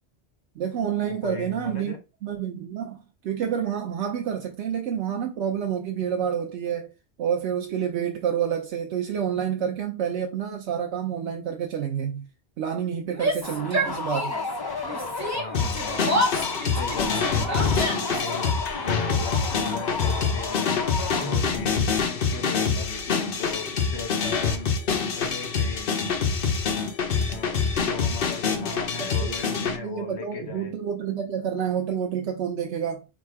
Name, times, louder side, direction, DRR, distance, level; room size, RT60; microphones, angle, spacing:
voice 1, 0.6-2.0 2.2-3.0 3.2-6.9 7.2-12.3 12.6-14.3 28.7-33.0, right 8 dB, 90° right, 1.0 m, -29 dB
voice 2, 1.1-2.0 15.3-16.2 16.6-17.8 18.1-18.5 18.8-20.9 21.2-24.7 25.1-26.0 27.3-30.7, left 4 dB, 80° left, 1.4 m, -37 dB
Yell, 13.1-14.6 14.8-18.3, equal, 15° right, 0.9 m, -29 dB
sound 1, 13.4-21.7, left 3 dB, 30° left, 0.5 m, -33 dB
sound 2, 15.5-29.8, left 5 dB, 55° left, 0.9 m, -26 dB
4.1 x 2.4 x 4.4 m
omnidirectional pair, 1.1 m